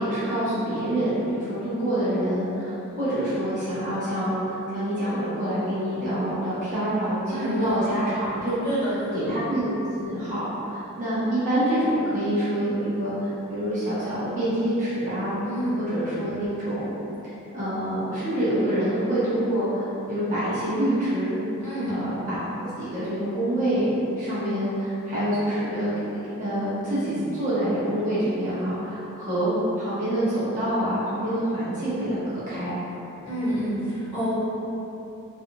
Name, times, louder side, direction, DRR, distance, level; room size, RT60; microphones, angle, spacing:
voice 1, 0.0-8.5 9.1-15.4 15.8-17.0 17.2-21.4 21.9-25.9 26.4-32.8, right 1 dB, 35° right, -12 dB, 0.8 m, -26 dB
voice 2, 7.3-7.9 8.6-9.2 15.4-15.8 21.6-22.0 33.2-34.3, equal, 25° left, -14 dB, 1.1 m, -28 dB
2.6 x 2.4 x 2.7 m, 2.9 s
head